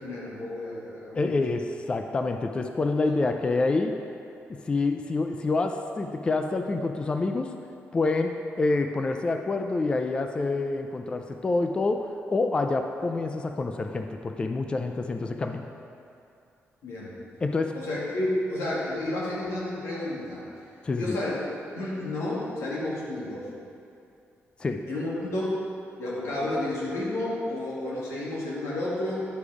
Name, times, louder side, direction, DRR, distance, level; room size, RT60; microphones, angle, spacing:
voice 1, 0.0-1.4 16.8-17.1 17.7-20.4 21.0-21.4 21.7-23.5 24.9-25.6 26.0-29.3, left 1 dB, 80° left, -6 dB, 2.2 m, -31 dB
voice 2, 1.2-4.0 4.5-7.5 7.9-15.7 17.4-17.8 20.8-21.2 24.6-24.8, left 3 dB, 20° left, 5 dB, 0.3 m, -27 dB
10.5 x 5.1 x 4.8 m, 2.6 s
wide cardioid pair, 165°, 5 cm